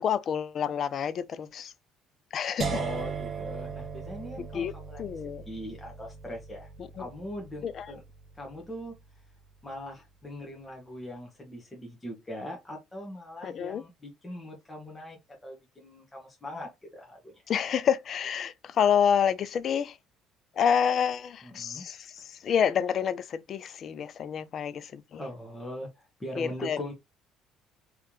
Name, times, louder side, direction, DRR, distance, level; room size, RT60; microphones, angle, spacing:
voice 1, 0.0-1.7 2.3-2.8 4.5-4.7 5.0-5.4 7.0-7.1 7.6-7.9 13.4-13.8 17.5-20.0 20.6-25.2 26.4-26.8, left 8 dB, 55° left, 0.4 m, -28 dB
sound 1, 2.6-8.5, right 5 dB, 40° right, 1.1 m, -38 dB
voice 2, 2.7-6.7 7.0-8.0 8.4-8.9 9.6-17.4 21.4-21.8 25.2-26.9, left 1 dB, 15° left, 1.7 m, -41 dB
3.5 x 3.3 x 3.0 m
supercardioid pair, 80°, 0 cm